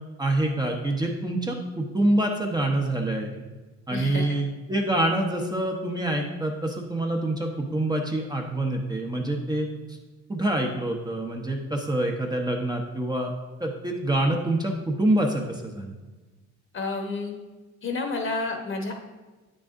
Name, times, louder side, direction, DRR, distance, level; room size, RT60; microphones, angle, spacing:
voice 1, 0.2-3.5 3.9-9.7 10.3-13.3 13.6-15.9, right 1 dB, 15° right, 1 dB, 0.8 m, -26 dB
voice 2, 3.9-4.4 16.7-17.3 17.8-19.0, left 3 dB, 40° left, 3 dB, 1.1 m, -30 dB
8.2 x 6.2 x 2.6 m, 1.2 s
cardioid pair, 90°, 30 cm